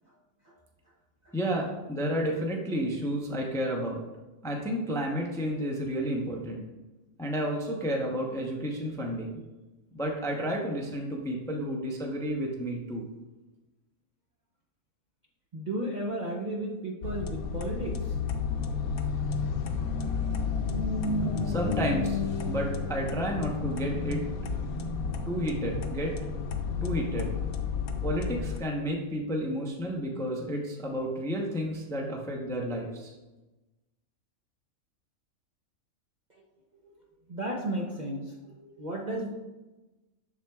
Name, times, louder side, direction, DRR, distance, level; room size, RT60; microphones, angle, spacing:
voice 1, 1.3-4.0 4.4-6.6 7.2-9.4 9.9-13.0 21.4-22.2 22.5-24.2 25.3-26.2 26.8-27.3 28.0-33.1, equal, 5° left, 0 dB, 0.5 m, -31 dB
voice 2, 15.5-18.2 36.3-36.4 37.3-39.3, right 1 dB, 40° right, -2 dB, 0.7 m, -34 dB
sound 1, 17.0-28.6, left 5 dB, 80° left, 1.1 m, -31 dB
7.3 x 6.5 x 2.3 m, 1.1 s
omnidirectional pair, 1.5 m